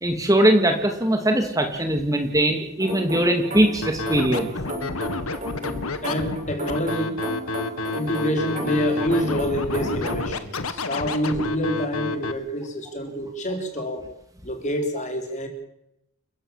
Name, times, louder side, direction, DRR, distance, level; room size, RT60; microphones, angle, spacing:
voice 1, 0.0-4.5, right 1 dB, 15° right, 4 dB, 2.5 m, -21 dB
sound 1, 2.8-10.2, equal, 35° right, 6.8 m, -33 dB
Scratching (performance technique), 3.8-12.3, left 3 dB, 85° left, 1.8 m, -29 dB
voice 2, 6.0-7.2 7.9-14.0 14.4-15.5, equal, 35° left, 4 dB, 4.4 m, -27 dB
30.0 x 14.5 x 7.5 m, 0.81 s
head